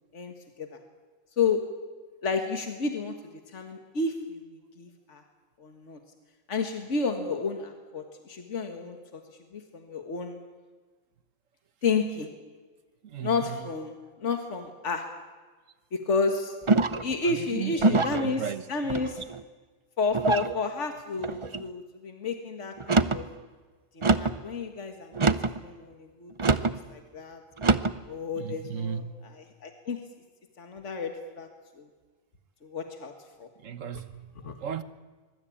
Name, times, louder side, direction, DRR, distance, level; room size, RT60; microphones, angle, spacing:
voice 1, 0.1-0.7 1.4-1.6 2.2-3.2 3.5-5.2 5.6-6.0 6.5-9.2 9.5-10.4 11.8-12.3 13.2-13.9 14.2-15.1 15.9-16.6 17.0-18.4 18.7-19.2 20.0-23.3 24.0-27.4 28.1-29.0 29.6-30.0 30.6-31.5 31.8-31.9 32.6-33.1 33.4-33.5 34.4-34.6, left 4 dB, 70° left, 2.1 m, -31 dB
voice 2, 13.0-13.7 17.2-19.0 28.3-29.3 33.6-34.3 34.6-34.8, right 8 dB, 85° right, 1.5 m, -35 dB
sound 1, 16.7-17.1 17.8-18.3 18.9-19.4 20.1-20.5 21.2-21.6 22.8-23.2 24.0-24.4 25.1-25.6 26.4-26.8 27.6-28.0, right 3 dB, 30° right, 0.7 m, -24 dB
24.5 x 22.5 x 8.7 m
omnidirectional pair, 1.3 m